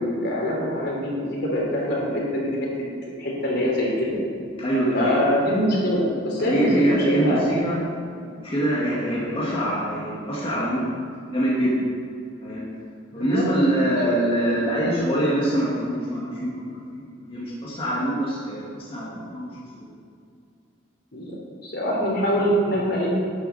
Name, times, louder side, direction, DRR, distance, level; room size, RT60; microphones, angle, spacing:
voice 1, 0.0-2.5 2.8-2.9 3.2-4.2 4.9-7.6 9.3-9.5 13.1-13.4 14.0-14.1 21.1-21.4 21.6-23.1, equal, 55° left, -3 dB, 3.2 m, -24 dB
voice 2, 4.6-5.2 6.4-7.8 8.4-10.9 11.3-11.9 12.4-12.6 13.1-16.5 16.9-19.5, right 1 dB, 30° left, -7 dB, 2.0 m, -24 dB
12.0 x 10.0 x 4.2 m, 2.4 s
head